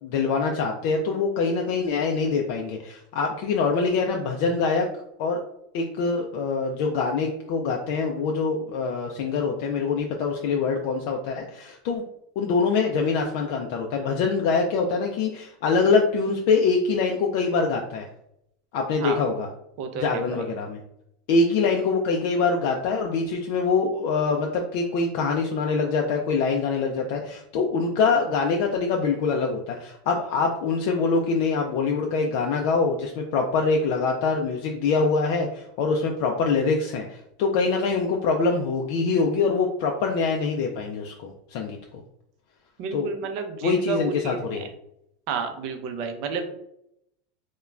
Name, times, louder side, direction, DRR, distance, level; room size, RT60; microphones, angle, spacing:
voice 1, 0.0-4.9 5.2-5.4 5.7-12.0 12.4-18.1 18.7-19.5 20.0-20.8 21.3-42.0 42.9-43.1 43.6-44.7, left 4 dB, 60° left, 1 dB, 0.3 m, -24 dB
voice 2, 19.8-20.4 42.8-44.7 45.3-46.4, right 5 dB, 55° right, 6 dB, 0.5 m, -31 dB
2.4 x 2.1 x 3.1 m, 0.79 s
supercardioid pair, 135°, 0 cm